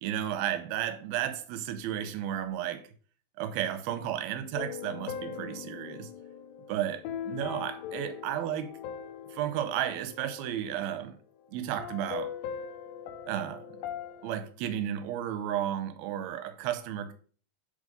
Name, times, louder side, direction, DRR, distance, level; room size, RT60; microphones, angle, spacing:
voice 1, 0.0-2.9 3.4-6.1 6.7-8.7 9.3-11.2 11.5-12.4 13.3-13.8 14.2-17.1, right 11 dB, 80° right, 2.3 m, -33 dB
sound 1, 4.5-11.2 11.8-14.3, left 8 dB, 80° left, 2.9 m, -40 dB
10.0 x 3.6 x 5.3 m
omnidirectional pair, 5.3 m